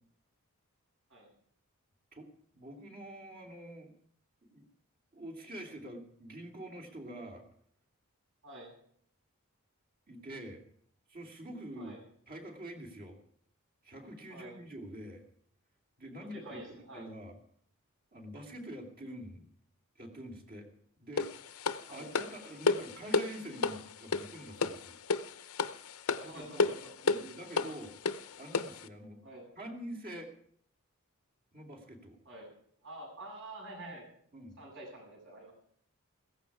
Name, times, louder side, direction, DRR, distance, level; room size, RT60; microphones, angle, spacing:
voice 1, 2.5-3.9 4.5-4.6 5.1-7.4 10.1-10.6 11.1-12.0 12.3-13.2 13.8-15.2 16.0-17.3 18.1-19.5 19.9-20.7 21.0-21.4 21.8-25.0 26.2-26.7 27.0-27.9 28.4-29.2 29.5-30.3 31.5-32.2 34.3-34.6, right 1 dB, 40° right, 2 dB, 2.9 m, -46 dB
voice 2, 16.2-17.1 21.9-22.1 26.1-27.4 28.1-28.2 29.2-29.4 32.2-32.5 32.8-34.1 34.6-35.5, right 1 dB, 60° right, -1 dB, 7.8 m, -48 dB
sound 1, 21.2-28.9, left 4 dB, 80° left, 0.8 m, -33 dB
16.5 x 14.5 x 4.9 m, 0.63 s
head